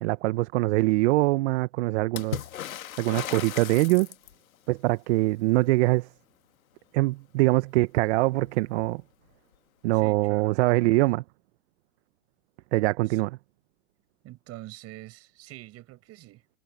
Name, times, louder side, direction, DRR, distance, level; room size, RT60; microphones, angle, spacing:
voice 1, 0.0-2.4 3.0-4.1 4.7-6.1 6.9-9.0 9.8-11.2 12.7-13.4, right 20 dB, 55° right, 1.1 m, -23 dB
Water / Splash splatter, 2.1-4.5 7.8-7.9 8.2-9.0 10.0-10.1, left 11 dB, 85° left, 1.8 m, -37 dB
voice 2, 9.9-10.5 13.1-13.2 14.2-16.6, right 17 dB, 35° right, 5.3 m, -44 dB
hypercardioid pair, 120°, 41 cm